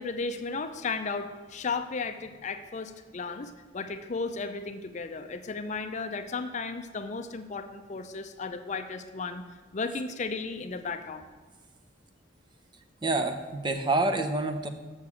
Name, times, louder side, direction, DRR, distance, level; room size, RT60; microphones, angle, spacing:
voice 1, 0.0-9.4 9.7-11.2, left 4 dB, 40° left, 9 dB, 0.5 m, -34 dB
voice 2, 13.0-14.7, right 2 dB, 25° right, 6 dB, 0.6 m, -27 dB
7.2 x 6.6 x 6.9 m, 1.3 s
head